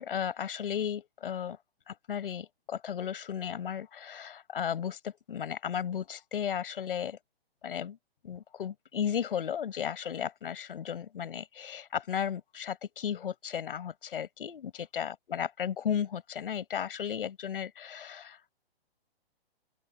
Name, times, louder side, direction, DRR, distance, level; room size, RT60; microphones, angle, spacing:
voice 1, 0.0-1.6 1.9-7.2 7.6-8.0 8.2-18.5, left 8 dB, 60° left, 7.9 m, -35 dB
open air
hypercardioid pair, 165°, 31 cm